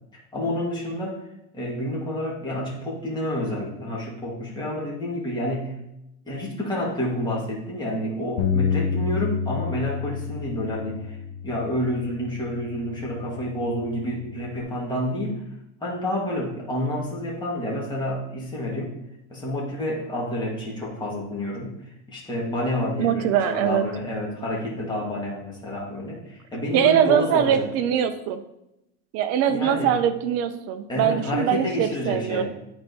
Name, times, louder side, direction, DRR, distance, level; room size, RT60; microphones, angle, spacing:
voice 1, 0.3-1.2 1.5-5.8 6.2-11.2 11.4-15.4 15.8-18.9 19.3-21.8 22.1-27.7 29.5-30.0 30.9-32.4, left 1 dB, 10° left, -5 dB, 1.8 m, -29 dB
Bass guitar, 8.4-14.6, left 6 dB, 85° left, 0.8 m, -30 dB
voice 2, 23.0-23.8 26.7-28.4 29.1-32.4, right 9 dB, 35° right, 9 dB, 0.5 m, -22 dB
9.7 x 4.4 x 2.7 m, 0.87 s
supercardioid pair, 140°, 44 cm